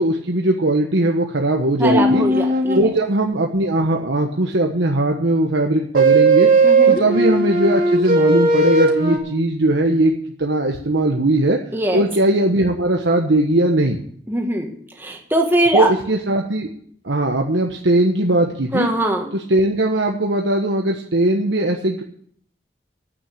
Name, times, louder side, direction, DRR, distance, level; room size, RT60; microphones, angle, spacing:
voice 1, 0.0-2.2 2.7-6.5 6.9-10.1 10.4-11.6 11.9-14.0 15.7-16.7 17.0-18.9 19.3-22.0, right 1 dB, 85° right, 1 dB, 1.2 m, -19 dB
voice 2, 1.8-2.9 6.6-7.0 11.7-12.0 14.3-14.7 15.0-15.9 18.7-19.3, right 1 dB, 10° right, 1 dB, 1.8 m, -21 dB
sound 1, 1.8-2.8 6.0-9.2, right 3 dB, 50° right, 2.9 m, -16 dB
9.6 x 8.8 x 8.3 m, 0.62 s
head